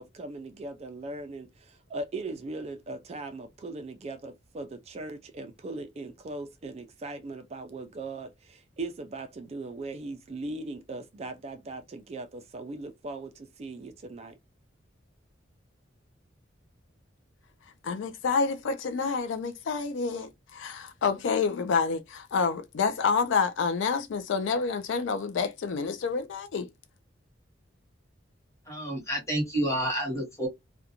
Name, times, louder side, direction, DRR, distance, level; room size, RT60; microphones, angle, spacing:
voice 1, 0.0-14.4, right 2 dB, 35° right, 0.4 m, -39 dB
voice 2, 17.8-26.7, left 5 dB, 75° left, 0.4 m, -28 dB
voice 3, 28.7-30.5, right 1 dB, 15° left, 1.1 m, -29 dB
2.4 x 2.2 x 2.7 m
head